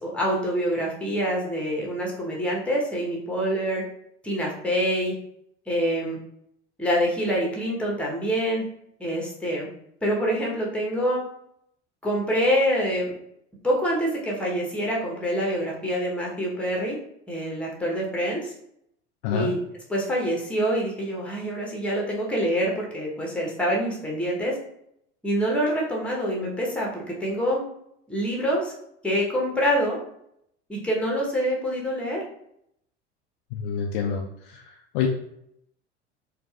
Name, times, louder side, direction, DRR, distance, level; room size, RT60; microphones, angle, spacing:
voice 1, 0.0-3.8 4.2-5.1 5.7-6.2 6.8-8.6 9.0-9.7 10.0-11.2 12.0-13.1 13.6-17.0 17.3-18.5 19.3-19.6 19.9-24.6 25.2-27.6 28.1-28.7 29.0-30.0 30.7-32.2, equal, 5° left, -2 dB, 1.0 m, -26 dB
voice 2, 19.2-19.5 33.5-35.1, left 7 dB, 45° left, 2 dB, 0.5 m, -28 dB
4.0 x 2.4 x 2.4 m, 0.74 s
figure-of-eight pair, 70°, 35 cm